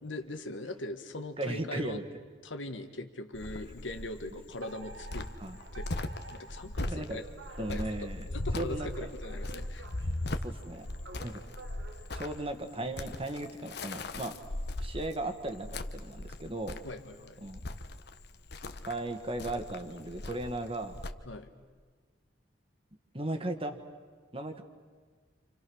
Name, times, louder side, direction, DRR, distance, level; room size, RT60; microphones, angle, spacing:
voice 1, 0.0-2.0 2.4-5.3 5.7-5.9 6.3-7.3 7.7-9.9 16.8-17.4 21.3-21.5, left 2 dB, 90° left, 7 dB, 1.7 m, -41 dB
voice 2, 1.4-2.0 5.4-5.6 6.9-7.2 7.6-8.3 8.6-9.1 10.4-10.9 11.2-11.4 12.1-14.4 14.8-15.7 15.9-16.8 17.4-17.6 18.8-21.0 23.1-23.8 24.3-24.6, right 1 dB, 30° right, 6 dB, 1.7 m, -36 dB
Cricket, 3.3-21.1, left 1 dB, 60° left, 1.2 m, -39 dB
Alarm, 4.6-13.2, right 2 dB, 75° right, 1.6 m, -51 dB
29.5 x 27.5 x 6.4 m, 1.5 s
head